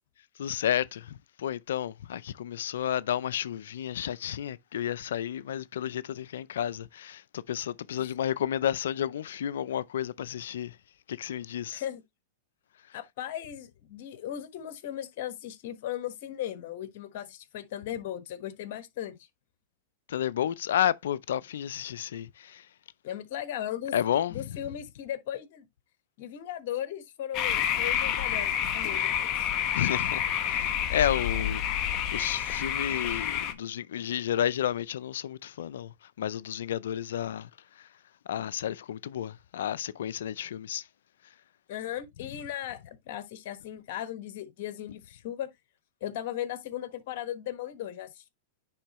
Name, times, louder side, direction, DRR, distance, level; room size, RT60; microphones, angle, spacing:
voice 1, 0.4-10.7 11.1-11.8 20.1-22.6 23.9-24.5 29.7-31.6 32.1-35.9 36.2-37.5 38.3-40.8, left 10 dB, 75° left, 0.4 m, -31 dB
voice 2, 11.7-12.0 12.9-19.2 23.0-24.0 24.3-25.7 26.2-29.5 41.7-45.5 46.0-48.3, left 11 dB, 60° left, 1.3 m, -37 dB
sound 1, 27.3-33.5, left 9 dB, 40° left, 1.1 m, -28 dB
10.0 x 3.7 x 3.0 m
hypercardioid pair, 120°, 0 cm